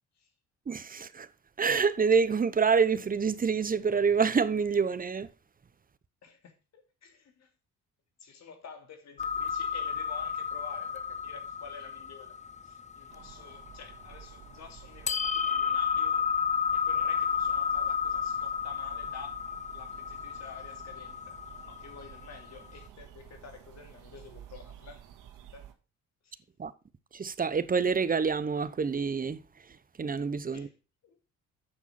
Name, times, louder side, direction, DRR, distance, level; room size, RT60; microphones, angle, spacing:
voice 1, 0.7-1.3 1.6-5.3 26.6-26.7 27.1-29.4 30.0-30.7, right 5 dB, 30° right, 0.9 m, -27 dB
voice 2, 6.2-7.5 8.2-16.3 16.7-19.4 19.7-21.4 21.7-25.0 25.5-25.7 26.2-26.4 30.5-30.7 31.0-31.2, left 6 dB, 60° left, 2.8 m, -50 dB
sound 1, 9.2-14.4 15.1-22.5, left 6 dB, 25° left, 0.5 m, -32 dB
sound 2, 13.1-25.7, right 10 dB, 90° right, 2.0 m, -52 dB
8.9 x 6.3 x 5.8 m
cardioid pair, 90°, 30 cm